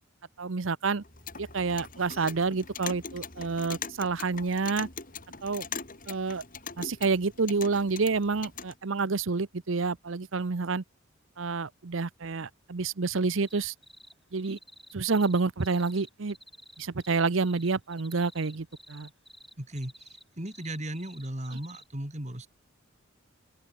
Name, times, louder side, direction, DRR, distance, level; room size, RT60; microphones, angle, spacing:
voice 1, 0.4-1.0 1.4-4.9 5.4-5.7 6.1-6.4 6.8-10.8 11.4-13.7 14.3-14.6 14.9-16.4 16.8-19.1, right 4 dB, 65° right, 0.8 m, -28 dB
Clock, 1.0-8.7, left 6 dB, 40° left, 5.0 m, -41 dB
sound 1, 13.2-14.1 14.4-21.9, equal, ahead, 4.5 m, -52 dB
voice 2, 19.6-22.5, right 1 dB, 35° right, 3.5 m, -37 dB
open air
head